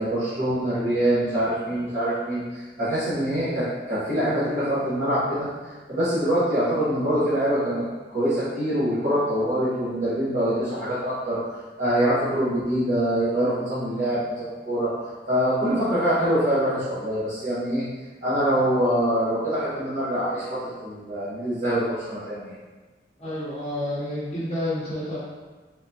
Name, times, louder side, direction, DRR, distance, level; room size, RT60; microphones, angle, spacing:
voice 1, 0.0-7.8 8.1-11.4 11.8-14.9 15.3-17.8 18.2-22.5, right 1 dB, 45° right, -14 dB, 1.1 m, -24 dB
voice 2, 23.2-25.2, left 1 dB, 30° left, -11 dB, 0.7 m, -29 dB
3.9 x 3.4 x 2.7 m, 1.3 s
head